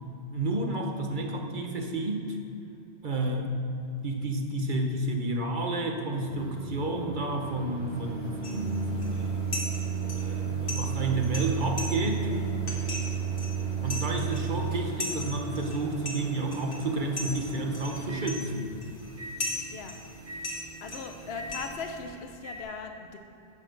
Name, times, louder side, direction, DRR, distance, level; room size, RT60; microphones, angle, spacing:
voice 1, 0.3-2.4 3.0-3.5 4.0-9.4 10.0-12.3 13.8-18.7, right 2 dB, 45° right, 3 dB, 1.2 m, -31 dB
Microwave oven, 6.1-22.6, right 6 dB, 80° right, 2.5 m, -34 dB
sound 1, 8.4-22.0, left 1 dB, 50° left, 2.0 m, -40 dB
voice 2, 19.7-20.0 20.8-23.2, left 5 dB, 70° left, 5 dB, 1.0 m, -39 dB
8.9 x 8.4 x 6.7 m, 2.8 s
omnidirectional pair, 1.2 m